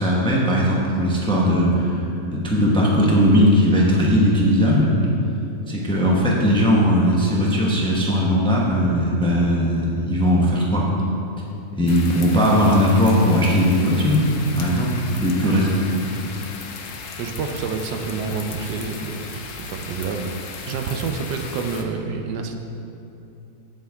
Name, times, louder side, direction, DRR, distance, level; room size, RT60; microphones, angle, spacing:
voice 1, 0.0-2.0 2.3-4.9 5.7-10.9 11.8-14.2 14.5-15.7, equal, 5° left, -4 dB, 0.8 m, -18 dB
sound 1, 11.9-21.8, left 5 dB, 60° left, 0.9 m, -36 dB
voice 2, 17.2-22.6, right 5 dB, 85° right, 5 dB, 1.3 m, -28 dB
8.8 x 7.4 x 3.6 m, 2.8 s
omnidirectional pair, 1.7 m